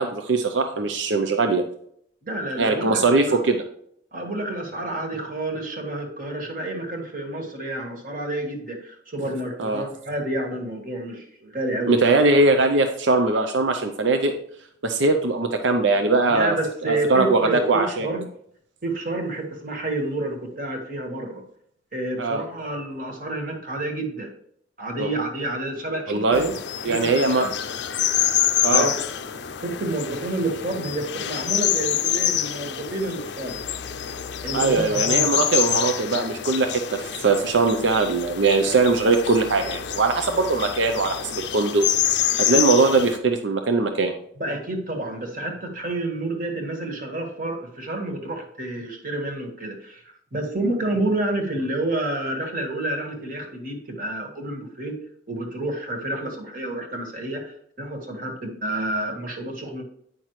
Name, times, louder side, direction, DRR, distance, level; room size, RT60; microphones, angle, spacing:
voice 1, 0.0-1.6 2.6-3.6 9.6-9.8 11.9-14.3 14.8-16.6 16.8-18.1 22.2-22.4 25.0-25.1 26.1-26.5 26.8-27.5 28.6-28.9 34.5-41.9 42.4-44.1, right 3 dB, 80° right, 6 dB, 0.6 m, -21 dB
voice 2, 2.2-3.4 4.1-11.9 16.3-18.3 18.8-21.4 21.9-24.3 24.8-26.5 26.9-27.5 28.7-29.0 29.6-33.6 34.4-35.3 44.4-55.0 55.3-59.8, right 2 dB, 45° right, 2 dB, 1.6 m, -29 dB
sound 1, 26.3-43.2, left 10 dB, 70° left, 0.5 m, -26 dB
9.1 x 5.8 x 3.2 m, 0.67 s
head